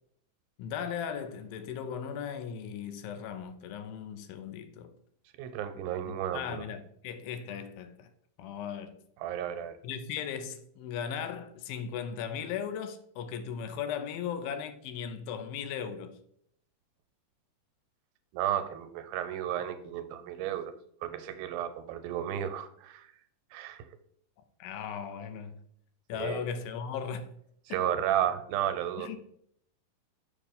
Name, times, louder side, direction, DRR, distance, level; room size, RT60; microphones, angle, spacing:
voice 1, 0.6-4.9 6.1-8.1 8.4-9.0 9.8-16.2 24.6-25.6 26.1-27.3 27.7-27.8 29.0-29.2, left 7 dB, 90° left, 2.4 m, -37 dB
voice 2, 5.4-6.4 9.2-9.8 18.3-20.7 21.0-23.1 23.5-23.8 26.2-26.4 27.7-29.2, right 10 dB, 90° right, 2.4 m, -33 dB
6.5 x 3.0 x 5.4 m
omnidirectional pair, 4.2 m